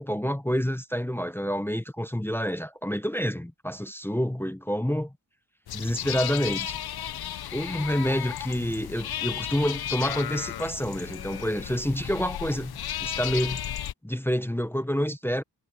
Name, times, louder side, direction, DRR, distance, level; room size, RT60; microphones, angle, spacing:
voice 1, 0.0-5.1 5.7-6.8 7.5-12.7 13.0-13.7 14.0-15.4, equal, 5° left, 0.8 m, -28 dB
sound 1, 5.7-13.9, left 11 dB, 75° left, 0.5 m, -34 dB
wide cardioid pair, 75°, 38 cm